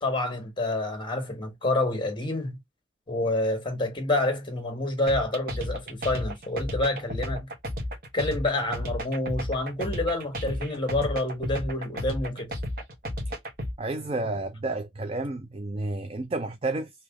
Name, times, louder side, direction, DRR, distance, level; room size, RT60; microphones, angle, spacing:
voice 1, 0.0-2.6 3.1-7.5 8.1-12.5, left 2 dB, 25° left, 1.2 m, -28 dB
sound 1, 5.1-13.7, equal, 50° right, 1.1 m, -32 dB
voice 2, 13.8-16.9, right 2 dB, 30° right, 0.4 m, -31 dB
3.3 x 2.9 x 3.6 m
head